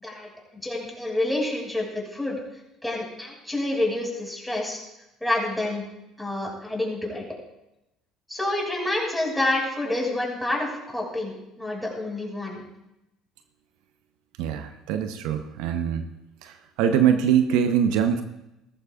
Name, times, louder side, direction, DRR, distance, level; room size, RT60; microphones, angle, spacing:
voice 1, 0.6-2.4 2.8-4.8 5.2-5.8 6.2-7.2 8.3-12.7, left 1 dB, 5° left, -2 dB, 5.6 m, -28 dB
voice 2, 14.4-16.1 16.4-18.2, right 8 dB, 75° right, 8 dB, 0.8 m, -23 dB
18.5 x 14.0 x 2.4 m, 0.91 s
hypercardioid pair, 70°, 0 cm